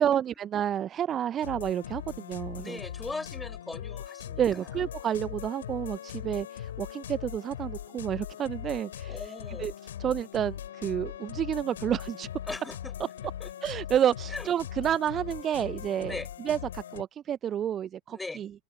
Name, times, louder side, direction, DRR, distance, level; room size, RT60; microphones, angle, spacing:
voice 1, 0.0-2.8 4.4-9.7 10.0-12.3 13.6-18.5, right 10 dB, 25° right, 1.0 m, -30 dB
sound 1, 1.4-17.0, left 10 dB, 60° left, 6.1 m, -40 dB
voice 2, 2.6-4.8 6.2-6.4 9.1-9.7 12.5-12.9 13.4-13.5 14.3-14.5 16.0-16.3 18.1-18.4, left 3 dB, 10° left, 5.9 m, -39 dB
open air
figure-of-eight pair, 90°, 0 cm